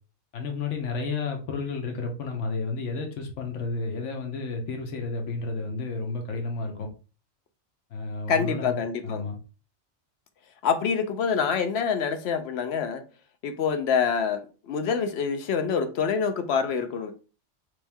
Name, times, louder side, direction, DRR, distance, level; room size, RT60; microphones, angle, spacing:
voice 1, 0.3-6.9 7.9-8.8 9.0-9.4, left 3 dB, 85° left, 1.1 m, -31 dB
voice 2, 8.3-9.2 10.6-13.0 13.4-17.1, left 6 dB, 70° left, 0.8 m, -26 dB
3.3 x 3.1 x 3.3 m
omnidirectional pair, 1.2 m